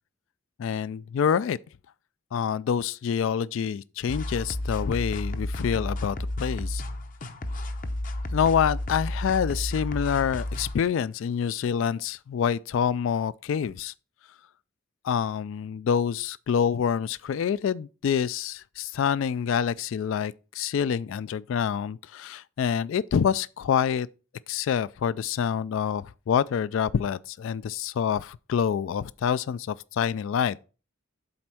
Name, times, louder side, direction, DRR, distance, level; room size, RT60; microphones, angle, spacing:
voice 1, 0.6-1.6 2.3-6.8 8.3-13.9 15.0-24.1 24.5-30.6, left 7 dB, 70° left, 0.3 m, -27 dB
sound 1, 4.1-10.7, left 1 dB, 40° left, 0.7 m, -32 dB
7.8 x 4.3 x 5.9 m
head